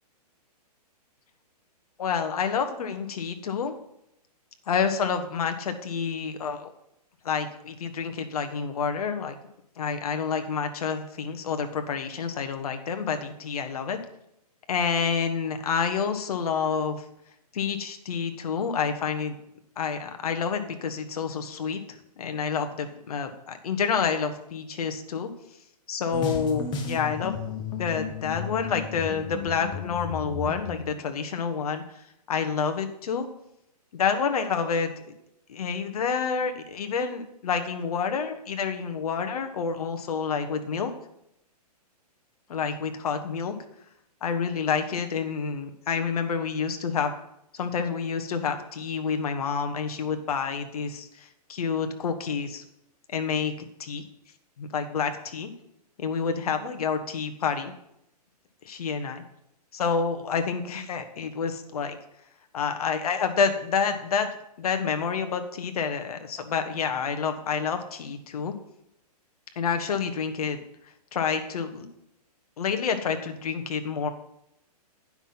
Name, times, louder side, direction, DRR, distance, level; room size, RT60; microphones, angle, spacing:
voice 1, 2.0-3.7 4.7-6.7 7.2-9.4 9.8-14.0 14.7-17.0 17.5-19.3 19.8-21.8 22.2-25.3 25.9-27.3 27.8-31.8 32.3-33.3 33.9-34.9 35.5-40.9 42.5-43.5 44.2-47.1 47.5-52.6 53.1-53.5 53.8-54.0 54.6-55.5 56.0-57.7 58.6-59.2 59.7-62.0 62.5-64.3 64.6-68.5 69.6-70.6 71.1-71.9 72.6-74.1, left 6 dB, 65° left, 7 dB, 1.4 m, -28 dB
sound 1, 26.1-30.9, left 5 dB, 20° left, 1.0 m, -34 dB
9.8 x 6.0 x 5.7 m, 0.80 s
hypercardioid pair, 135°, 21 cm